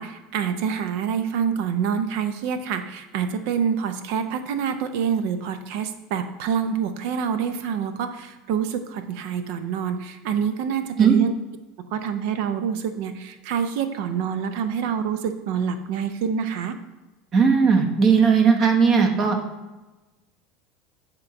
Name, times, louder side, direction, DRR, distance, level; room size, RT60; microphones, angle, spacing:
voice 1, 0.0-11.3 11.9-16.8, right 7 dB, 70° right, 9 dB, 0.6 m, -26 dB
voice 2, 17.3-19.4, right 6 dB, 40° right, 4 dB, 1.0 m, -17 dB
7.6 x 3.0 x 5.7 m, 1.1 s
hypercardioid pair, 100°, 0 cm